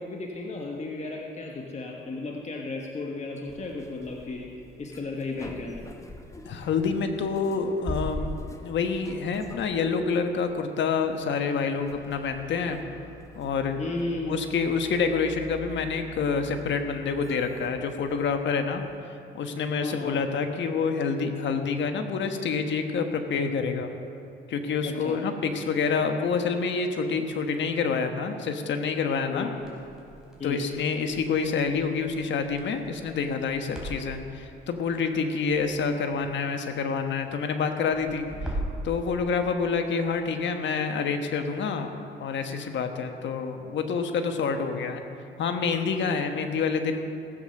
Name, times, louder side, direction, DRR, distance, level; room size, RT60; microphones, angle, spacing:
voice 1, 0.0-4.5 4.8-5.9 13.8-14.4 19.8-20.2 24.8-25.2 29.3-29.5 30.4-30.6, left 3 dB, 35° left, 1 dB, 1.3 m, -34 dB
sound 1, 3.5-19.0, equal, 15° left, 1.1 m, -43 dB
voice 2, 6.4-8.3 8.6-12.8 13.3-13.8 14.3-18.8 19.3-23.9 24.5-29.5 30.4-38.6 38.8-41.9 42.2-45.0 45.4-47.2, left 5 dB, 65° left, 6 dB, 1.3 m, -27 dB
Crackle, 29.6-38.9, right 1 dB, 5° right, 3.7 m, -41 dB
17.0 x 7.6 x 6.5 m, 2.7 s
cardioid pair, 90°, 20 cm